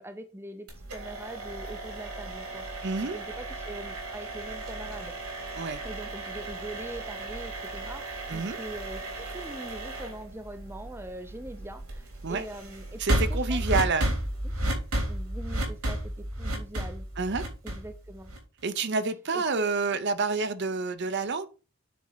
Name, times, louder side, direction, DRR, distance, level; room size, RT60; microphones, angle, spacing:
voice 1, 0.0-5.1 5.8-13.8 14.1-14.2 14.4-14.5 15.1-17.1 17.6-18.3 19.3-19.7, right 1 dB, 10° right, 0.6 m, -43 dB
sound 1, 0.7-18.6, right 1 dB, 85° right, 3.2 m, -34 dB
voice 2, 2.8-3.2 5.6-5.8 8.3-8.6 12.2-12.5 13.0-14.1 17.2-17.4 18.6-21.5, right 4 dB, 50° right, 0.6 m, -28 dB
9.3 x 4.3 x 4.0 m
head